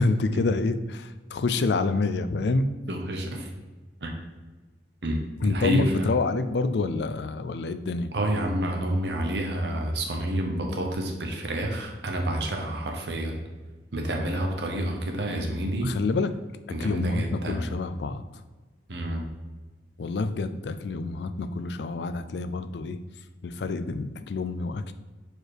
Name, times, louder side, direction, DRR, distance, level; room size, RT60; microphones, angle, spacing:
voice 1, 0.0-2.7 5.4-8.1 15.8-16.3 16.8-18.2 20.0-23.0 23.4-24.9, left 3 dB, 70° left, 11 dB, 0.4 m, -27 dB
voice 2, 2.9-3.5 4.0-4.1 5.0-5.9 8.1-13.4 13.9-15.9 16.7-17.7 18.9-19.2, right 1 dB, 75° right, 2 dB, 1.1 m, -29 dB
4.8 x 4.6 x 4.8 m, 1.2 s
head